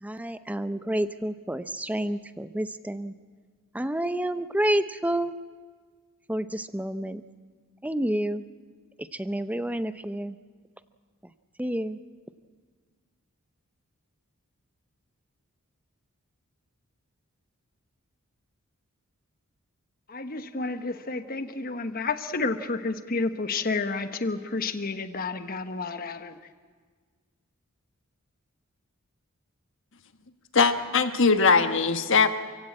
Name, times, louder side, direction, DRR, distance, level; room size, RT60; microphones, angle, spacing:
voice 1, 0.0-3.1 3.7-5.4 6.3-7.2 7.8-8.4 9.0-10.4 11.6-12.0, right 1 dB, 5° right, 12 dB, 0.6 m, -29 dB
voice 2, 20.1-26.4, left 3 dB, 40° left, 9 dB, 1.1 m, -30 dB
voice 3, 30.5-32.3, left 4 dB, 60° left, 9 dB, 1.4 m, -20 dB
28.0 x 16.5 x 8.7 m, 1.5 s
head